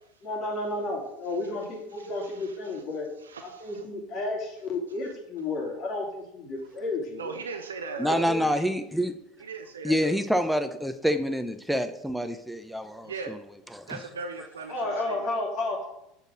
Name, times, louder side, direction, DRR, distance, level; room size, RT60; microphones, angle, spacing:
voice 1, 0.2-3.1 3.4-7.4 8.0-8.5 14.7-15.9, left 2 dB, 50° left, 0 dB, 2.8 m, -32 dB
voice 2, 2.0-2.6 3.2-3.9 7.2-8.7 9.4-10.2 13.0-13.4 13.9-15.2, right 4 dB, 90° right, 5 dB, 0.6 m, -39 dB
voice 3, 8.0-9.1 9.8-13.3 13.7-14.0, equal, ahead, 8 dB, 0.7 m, -27 dB
6.7 x 4.9 x 6.2 m, 0.81 s
hypercardioid pair, 85°, 0 cm